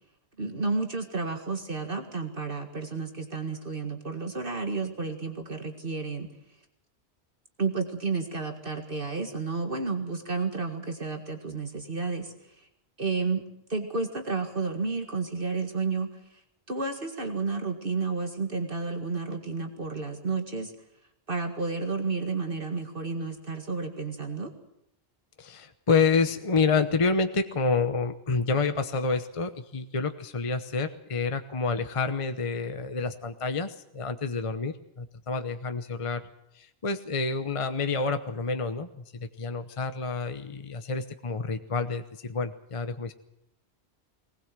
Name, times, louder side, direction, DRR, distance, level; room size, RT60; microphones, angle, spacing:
voice 1, 0.4-6.3 7.6-12.3 13.0-13.4 13.7-16.1 16.7-20.7 21.3-24.5, right 4 dB, 55° right, 4 dB, 2.1 m, -31 dB
voice 2, 25.4-36.3 36.5-43.1, left 4 dB, 30° left, 9 dB, 1.0 m, -28 dB
21.0 x 19.5 x 7.5 m, 0.80 s
omnidirectional pair, 1.1 m